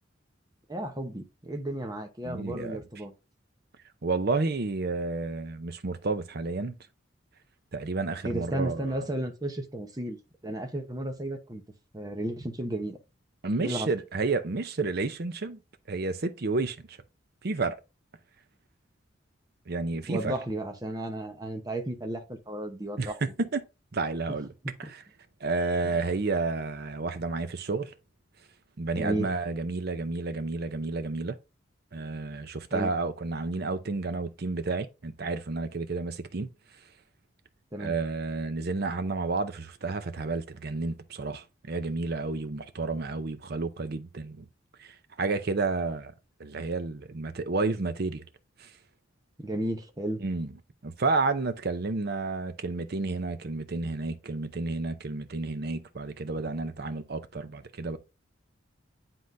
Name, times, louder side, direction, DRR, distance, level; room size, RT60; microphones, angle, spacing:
voice 1, 0.7-3.1 8.2-10.2 10.4-11.6 11.9-13.0 13.6-13.9 20.1-23.2 29.0-29.3 32.7-32.9 37.7-37.9 49.4-50.2, right 1 dB, 20° right, 0.9 m, -33 dB
voice 2, 2.2-2.8 4.0-6.8 7.7-9.0 13.4-15.6 15.9-17.0 17.4-17.8 19.7-20.3 23.0-23.6 23.9-24.5 24.8-25.0 25.4-27.9 28.8-31.4 31.9-36.5 37.8-44.5 44.8-46.1 46.4-48.2 48.6-48.7 50.2-50.5 50.8-58.0, right 3 dB, 55° right, 0.6 m, -31 dB
9.5 x 3.8 x 2.6 m
head